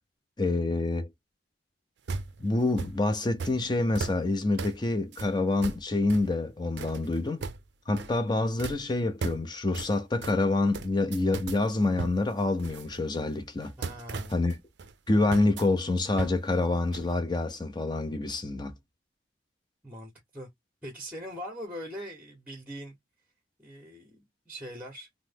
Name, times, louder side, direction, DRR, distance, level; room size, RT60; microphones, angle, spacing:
voice 1, 0.4-1.1 2.4-7.4 7.9-13.7 14.3-14.6 15.1-18.7, left 2 dB, 25° left, 0.5 m, -27 dB
sound 1, 2.1-3.0 3.4-3.6 3.9-4.3 4.6-4.8 5.1-5.3 5.6-6.3 6.8-7.6 8.0-8.3 8.6-8.8 9.2-9.5 9.7-9.9 10.2-10.4 10.7-11.6 12.0-13.2 13.6-14.9 15.3-15.7 16.2-16.4 16.7-16.8 16.9-17.1, right 4 dB, 60° right, 0.4 m, -37 dB
voice 2, 13.8-14.4 19.8-20.5 20.8-23.0 23.6-25.1, equal, 10° right, 0.8 m, -41 dB
2.9 x 2.1 x 3.3 m
head